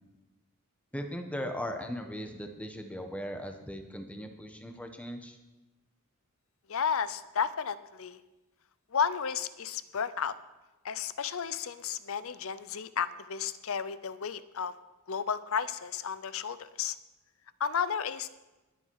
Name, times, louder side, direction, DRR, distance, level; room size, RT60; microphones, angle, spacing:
voice 1, 0.9-5.4, equal, 5° left, 5 dB, 1.2 m, -38 dB
voice 2, 6.7-8.2 8.9-10.3 10.8-14.7 15.1-17.0 17.6-18.3, left 7 dB, 65° left, 15 dB, 0.7 m, -32 dB
20.0 x 8.7 x 4.8 m, 1.1 s
head